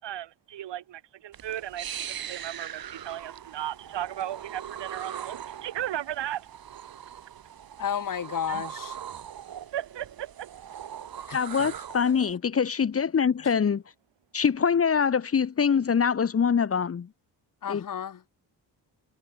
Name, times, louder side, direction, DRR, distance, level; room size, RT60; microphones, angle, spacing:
voice 1, 0.0-6.5 8.5-8.7 9.7-10.5, right 12 dB, 80° right, 5.6 m, -36 dB
sound 1, 1.3-12.3, right 9 dB, 55° right, 6.7 m, -40 dB
voice 2, 7.8-9.0 11.3-11.4 11.8-11.9 13.4-13.5 17.6-18.2, left 8 dB, 50° left, 5.6 m, -32 dB
voice 3, 11.3-13.8 14.3-17.1 17.7-17.8, left 6 dB, 35° left, 1.8 m, -24 dB
wide cardioid pair, 170°, 42 cm